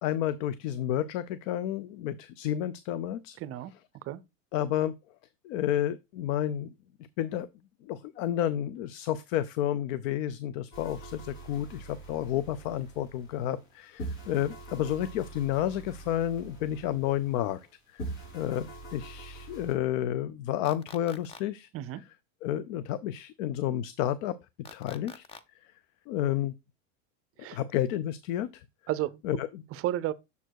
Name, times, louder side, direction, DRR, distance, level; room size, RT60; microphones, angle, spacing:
voice 1, 0.0-3.4 4.5-4.9 5.4-6.7 7.2-7.5 7.8-17.6 17.9-18.0 18.3-21.7 22.4-24.3 24.7-25.2 26.1-26.5 27.4-28.6 29.2-29.6, left 11 dB, 75° left, 0.6 m, -31 dB
voice 2, 3.4-3.7 4.0-4.2 21.7-22.0 27.4-27.6 28.9-29.2 29.7-30.1, right 13 dB, 40° right, 0.5 m, -32 dB
sound 1, 10.7-13.7 14.0-17.7 18.0-19.7, right 2 dB, 55° left, 3.0 m, -44 dB
sound 2, 20.7-21.4 24.7-25.4, left 5 dB, 15° left, 0.3 m, -46 dB
6.9 x 4.5 x 4.5 m
supercardioid pair, 135°, 38 cm